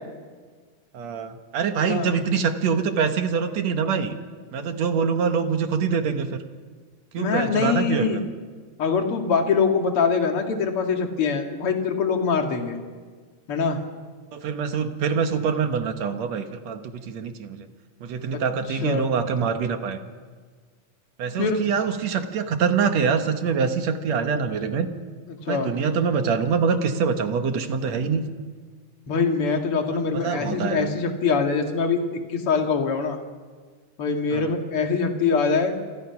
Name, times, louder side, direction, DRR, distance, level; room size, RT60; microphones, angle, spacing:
voice 1, 0.9-4.1 4.5-6.4 7.1-8.2 14.3-17.7 18.0-20.0 21.2-24.9 25.5-28.2 30.1-30.9 34.3-34.5, right 6 dB, 60° right, 7 dB, 2.4 m, -25 dB
voice 2, 1.8-2.1 7.2-8.2 8.8-12.8 13.5-13.8 18.8-19.1 21.4-21.6 25.4-25.7 29.1-32.0 32.3-33.2 34.0-35.7, left 5 dB, 45° left, 3 dB, 2.8 m, -23 dB
28.5 x 23.5 x 6.0 m, 1.5 s
omnidirectional pair, 3.8 m